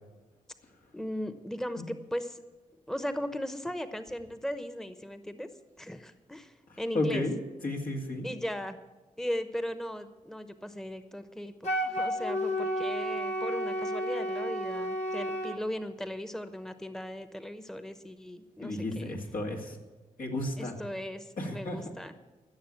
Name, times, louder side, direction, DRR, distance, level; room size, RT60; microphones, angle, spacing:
voice 1, 0.9-2.4 2.9-5.5 5.8-7.2 8.2-8.8 9.2-19.2 20.6-22.1, equal, 5° left, 10 dB, 0.9 m, -37 dB
voice 2, 6.9-7.4 7.6-8.3 18.6-19.8 20.2-20.7 21.4-21.8, left 2 dB, 75° left, 0 dB, 2.4 m, -32 dB
Wind instrument woodwind instrument, 11.6-15.6, equal, 55° left, 1.7 m, -31 dB
14.5 x 6.8 x 8.7 m, 1.2 s
cardioid pair, 55°, 14 cm